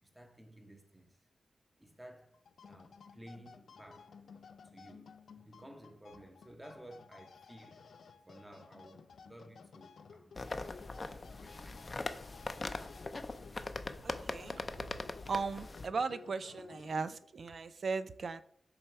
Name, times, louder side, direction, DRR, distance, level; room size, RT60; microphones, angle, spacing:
voice 1, 0.0-1.2 1.8-7.9 8.3-12.1, right 1 dB, 15° right, 1.1 m, -55 dB
sound 1, 2.3-17.3, left 5 dB, 80° left, 0.5 m, -56 dB
sound 2, 10.4-15.9, left 3 dB, 40° left, 0.6 m, -41 dB
voice 2, 14.0-14.7 15.3-18.4, right 4 dB, 65° right, 0.4 m, -37 dB
7.0 x 3.4 x 4.6 m
cardioid pair, 60°, 0 cm